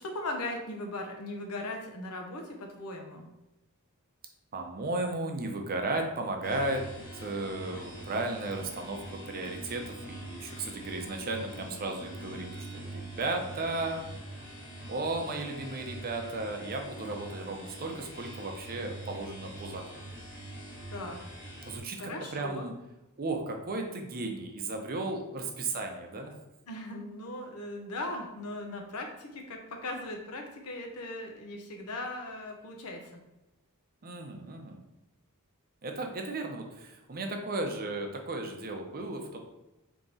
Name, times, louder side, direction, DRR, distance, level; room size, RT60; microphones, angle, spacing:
voice 1, 0.0-3.3 20.9-21.2 22.0-22.7 26.7-33.2, left 2 dB, 80° left, 3 dB, 0.8 m, -38 dB
voice 2, 4.5-6.8 7.1-14.0 14.9-20.1 21.7-22.7 23.2-26.3 34.0-34.8 35.8-39.4, right 2 dB, 40° right, 3 dB, 0.6 m, -35 dB
sound 1, 6.4-21.8, right 1 dB, 55° left, 1.2 m, -44 dB
3.6 x 2.9 x 3.9 m, 0.97 s
head